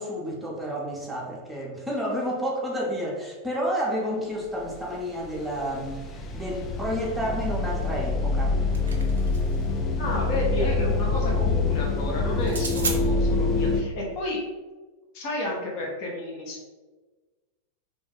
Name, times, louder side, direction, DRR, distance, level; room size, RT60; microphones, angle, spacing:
voice 1, 0.0-8.6, equal, 5° right, -4 dB, 0.7 m, -30 dB
sound 1, 4.7-5.0 5.2-13.8, left 3 dB, 25° left, 0.4 m, -26 dB
sound 2, 8.4-9.7 12.4-13.0, right 4 dB, 70° right, 0.4 m, -33 dB
voice 2, 10.0-14.4 15.1-16.6, left 1 dB, 45° left, -2 dB, 0.8 m, -31 dB
2.5 x 2.4 x 3.9 m, 1.3 s
figure-of-eight pair, 90°, 0 cm